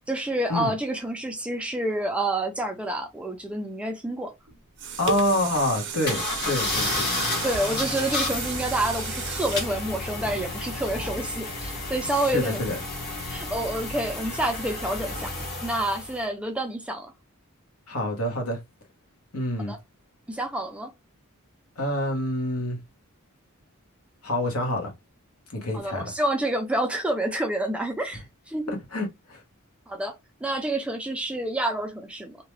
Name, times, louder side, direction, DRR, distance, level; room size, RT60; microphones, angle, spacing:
voice 1, 0.1-4.3 7.4-12.6 13.3-15.3 15.6-17.1 19.7-19.8 20.3-20.9 25.7-28.7 29.9-30.1 30.4-32.4, right 1 dB, 5° right, 0.4 m, -28 dB
sound 1, 4.5-10.8 11.3-11.4, right 6 dB, 55° right, 0.6 m, -35 dB
voice 2, 5.0-7.3 12.1-12.8 17.9-18.6 19.3-19.7 21.8-22.8 24.2-24.9 25.5-26.1 28.7-29.4, left 1 dB, 75° left, 1.1 m, -27 dB
sound 2, 6.1-16.2, left 2 dB, 45° left, 1.1 m, -31 dB
2.7 x 2.2 x 3.1 m
head